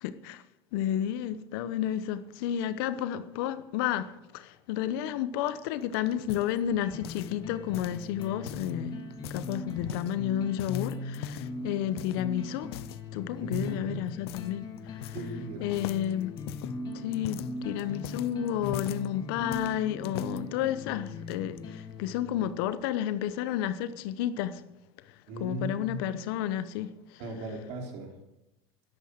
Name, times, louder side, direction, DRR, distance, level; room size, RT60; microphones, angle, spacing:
voice 1, 0.0-0.4 0.7-4.1 4.3-8.9 9.3-12.7 13.1-15.1 15.6-16.3 16.9-24.6 25.4-27.2, left 11 dB, 70° left, 1.0 m, -31 dB
sound 1, 5.5-7.4 7.7-8.7 9.1-10.2 10.6-11.6 12.0-12.2 12.7-13.0 13.5-13.8 14.3-14.5 14.8-15.4 15.7-19.1 19.5-20.4 21.1-21.6, left 14 dB, 90° left, 0.5 m, -42 dB
sound 2, 6.8-22.7, left 3 dB, 35° left, 1.9 m, -40 dB
voice 2, 13.4-14.1 15.1-15.7 25.3-26.1 27.2-28.1, right 1 dB, 60° right, 4.1 m, -37 dB
12.0 x 12.0 x 6.6 m
supercardioid pair, 130°, 13 cm